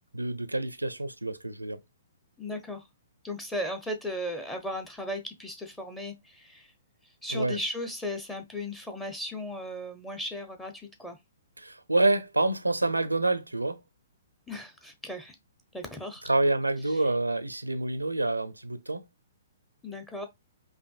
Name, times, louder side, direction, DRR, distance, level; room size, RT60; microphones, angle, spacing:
voice 1, 0.1-1.8 7.3-7.6 11.6-13.8 16.3-19.0, right 2 dB, 90° right, 0.5 m, -27 dB
voice 2, 2.4-2.9 3.2-6.7 7.2-11.2 14.5-15.4 15.7-16.2 16.9-17.0 19.8-20.3, left 1 dB, 10° left, 0.7 m, -36 dB
5.1 x 2.5 x 2.3 m
figure-of-eight pair, 120°, 0 cm